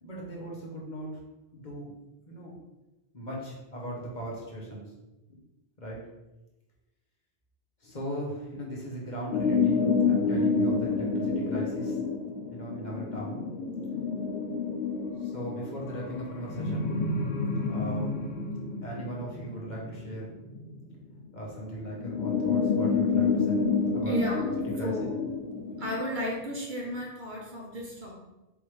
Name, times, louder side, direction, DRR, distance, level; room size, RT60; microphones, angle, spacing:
voice 1, 0.0-1.1 1.5-1.9 2.3-2.5 3.1-4.9 5.8-6.0 7.8-12.0 12.5-13.5 15.2-17.0 17.7-18.1 18.8-20.3 21.3-23.6 23.9-24.1 24.8-24.9, right 1 dB, 45° left, -3 dB, 1.1 m, -38 dB
sound 1, 9.3-21.1 21.9-26.0, left 4 dB, 80° left, 0.9 m, -29 dB
voice 2, 24.1-24.4 24.8-25.1 25.8-28.1, equal, 50° right, -3 dB, 1.1 m, -33 dB
4.6 x 3.5 x 3.1 m, 1.0 s
omnidirectional pair, 1.1 m